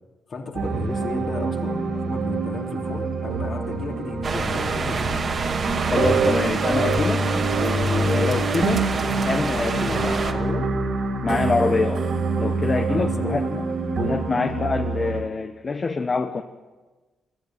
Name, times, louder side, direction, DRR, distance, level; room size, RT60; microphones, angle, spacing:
voice 1, 0.3-5.2 9.5-10.7 12.9-13.4, left 3 dB, 50° left, 1 dB, 3.5 m, -34 dB
sound 1, 0.5-15.2, right 3 dB, 60° right, 3.7 m, -25 dB
sound 2, 4.2-10.3, right 4 dB, 45° right, 2.1 m, -27 dB
voice 2, 5.9-7.3 7.5-9.0 9.2-10.1 11.2-12.1 12.4-13.6 14.0-16.4, left 4 dB, 35° left, 6 dB, 1.1 m, -25 dB
22.5 x 14.5 x 9.5 m, 1.2 s
cardioid pair, 110°, 0 cm